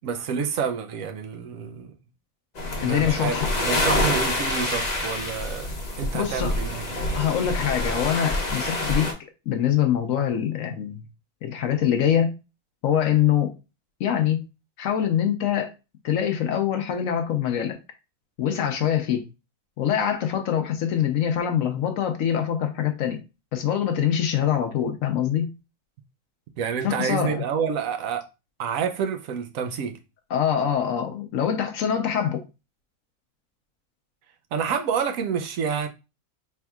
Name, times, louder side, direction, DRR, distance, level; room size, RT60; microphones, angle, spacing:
voice 1, 0.0-1.9 2.8-3.4 3.7-5.7 6.0-6.9 26.6-28.2 28.6-30.0 34.5-35.9, right 7 dB, 70° right, 1.0 m, -28 dB
sound 1, 2.6-9.1, left 1 dB, 35° left, 0.8 m, -27 dB
voice 2, 2.8-3.5 6.1-6.5 7.1-9.1 9.5-11.1 11.4-12.4 12.8-13.5 14.0-14.4 14.8-15.7 16.0-17.8 18.4-19.2 19.8-23.2 23.5-25.5 26.8-27.4 30.3-32.4, left 9 dB, 70° left, 0.9 m, -24 dB
4.4 x 3.5 x 2.3 m
omnidirectional pair, 1.6 m